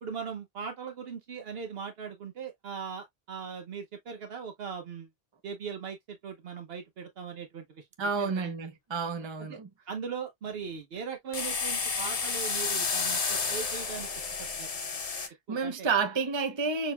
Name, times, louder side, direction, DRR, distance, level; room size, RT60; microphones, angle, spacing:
voice 1, 0.0-5.1 5.4-7.9 8.2-8.5 9.4-9.6 9.9-14.7 15.5-15.9, right 6 dB, 70° right, 0.9 m, -39 dB
voice 2, 8.0-9.7 15.2-16.9, right 5 dB, 30° right, 0.8 m, -30 dB
sound 1, 11.3-15.3, left 5 dB, 40° left, 0.8 m, -31 dB
6.3 x 2.8 x 2.2 m
omnidirectional pair, 1.1 m